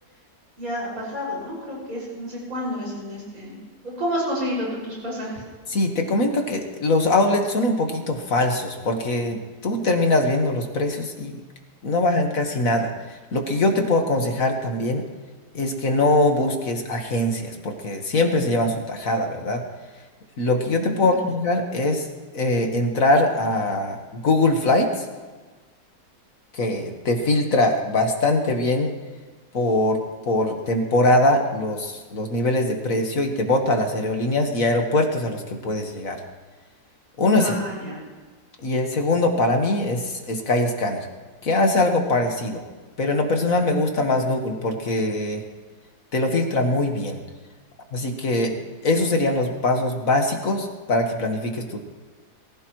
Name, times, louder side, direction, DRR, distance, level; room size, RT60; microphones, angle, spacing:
voice 1, 0.6-3.6 3.8-5.4 21.0-21.2 37.4-38.0, equal, 50° right, -5 dB, 6.4 m, -30 dB
voice 2, 5.7-11.4 11.8-12.9 13.3-15.0 15.5-19.6 20.4-22.1 22.3-24.9 26.5-28.9 29.5-30.0 30.3-36.2 37.2-37.6 38.6-41.1 41.4-42.6 43.0-45.4 46.1-47.2 47.9-51.8, left 2 dB, 50° left, 3 dB, 1.8 m, -22 dB
23.0 x 16.0 x 3.1 m, 1.3 s
omnidirectional pair, 1.9 m